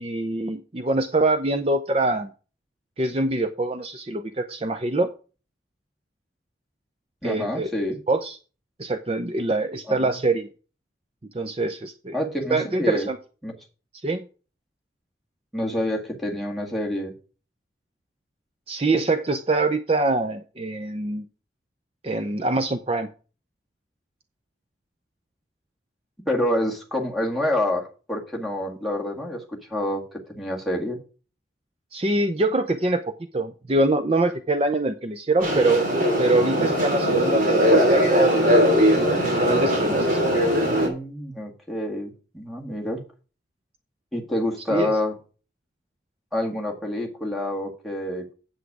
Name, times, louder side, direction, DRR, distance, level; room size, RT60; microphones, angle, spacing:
voice 1, 0.0-2.3 3.0-5.1 7.2-7.7 8.1-8.4 8.8-10.5 11.3-12.1 12.5-13.2 14.0-14.2 18.7-21.2 22.0-23.1 31.9-33.0 33.3-35.9 36.2-38.6 39.2-40.5 44.7-44.9, right 2 dB, 30° right, 8 dB, 0.6 m, -24 dB
voice 2, 7.2-8.0 9.9-10.2 12.1-13.1 13.4-13.6 15.5-17.1 26.3-29.4 29.7-31.0 40.6-43.0 44.1-45.1 46.3-48.3, left 1 dB, ahead, 1 dB, 1.8 m, -27 dB
sound 1, 35.4-40.9, equal, 45° right, 3.1 m, -20 dB
8.2 x 8.2 x 4.8 m, 0.36 s
head